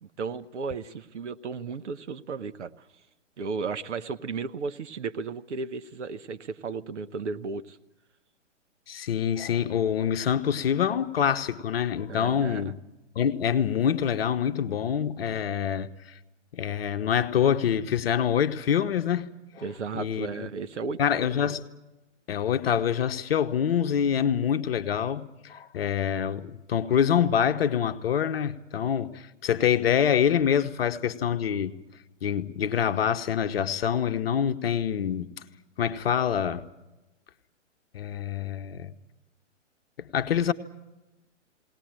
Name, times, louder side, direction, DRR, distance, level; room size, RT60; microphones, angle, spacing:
voice 1, 0.0-2.9 3.4-7.8 12.1-12.7 19.6-21.5, right 4 dB, 70° right, 1.0 m, -34 dB
voice 2, 8.9-12.8 13.1-16.1 16.5-19.6 19.9-20.5 21.0-21.7 22.3-31.8 32.2-35.3 35.8-36.7 37.9-38.9 40.0-40.5, left 8 dB, 50° left, 1.0 m, -26 dB
21.0 x 18.5 x 8.8 m
hypercardioid pair, 135°, 37 cm